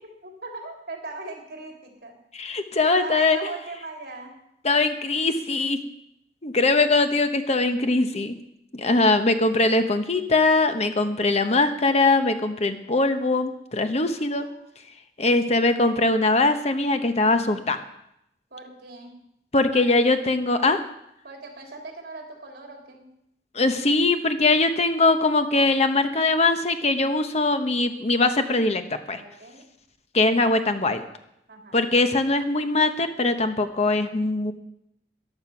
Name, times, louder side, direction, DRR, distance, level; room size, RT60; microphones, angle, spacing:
voice 1, 0.2-2.2 2.8-4.3 14.1-14.8 18.5-19.1 19.7-19.9 21.2-23.0 29.2-29.6 31.5-31.8, right 3 dB, 60° right, 1 dB, 3.5 m, -39 dB
voice 2, 2.3-3.4 4.6-5.8 6.4-8.4 8.7-14.5 15.2-17.8 19.5-20.8 23.5-29.2 30.1-31.0 31.7-34.5, left 2 dB, 35° left, 8 dB, 1.0 m, -21 dB
14.5 x 11.0 x 6.0 m, 0.79 s
head